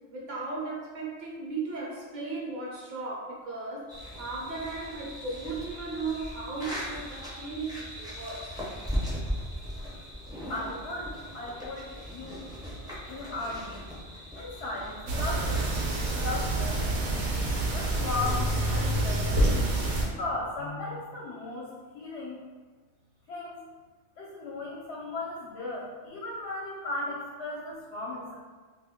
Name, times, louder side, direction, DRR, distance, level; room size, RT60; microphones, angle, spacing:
voice 1, 0.1-8.5, right 3 dB, 50° right, -5 dB, 0.7 m, -36 dB
sound 1, 3.9-16.3, equal, 5° right, 0.4 m, -39 dB
voice 2, 10.5-12.5 13.1-13.9 14.3-17.0 17.6-19.4 20.0-21.7 21.9-22.4 23.3-23.6 24.2-28.3, left 2 dB, 75° left, -6 dB, 0.8 m, -36 dB
sound 2, 15.1-20.1, right 1 dB, 85° right, 0.9 m, -27 dB
2.4 x 2.1 x 3.5 m, 1.4 s
omnidirectional pair, 1.2 m